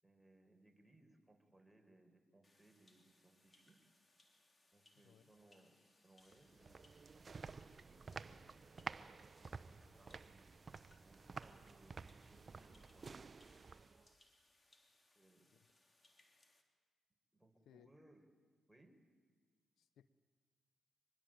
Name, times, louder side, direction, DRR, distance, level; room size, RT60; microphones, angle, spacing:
voice 1, 0.0-3.8 4.7-8.5 9.4-13.2 15.1-15.5 17.3-18.3 18.7-19.0, right 2 dB, 5° right, 3 dB, 4.9 m, -68 dB
sound 1, 2.4-16.6, left 2 dB, 30° left, 3.5 m, -73 dB
sound 2, 6.3-14.1, right 4 dB, 45° right, 0.8 m, -52 dB
voice 2, 19.8-20.1, left 10 dB, 80° left, 15 dB, 0.8 m, -66 dB
24.5 x 20.5 x 9.1 m, 1.5 s
supercardioid pair, 60°, 0 cm